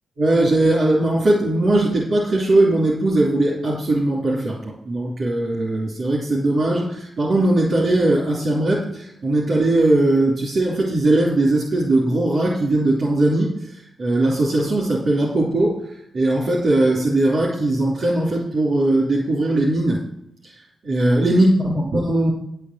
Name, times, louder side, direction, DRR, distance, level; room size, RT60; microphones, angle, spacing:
voice 1, 0.2-20.0 20.4-20.5 20.8-22.3, right 1 dB, 55° right, -6 dB, 3.0 m, -19 dB
11.0 x 5.7 x 7.5 m, 0.76 s
wide cardioid pair, 135°, 0 cm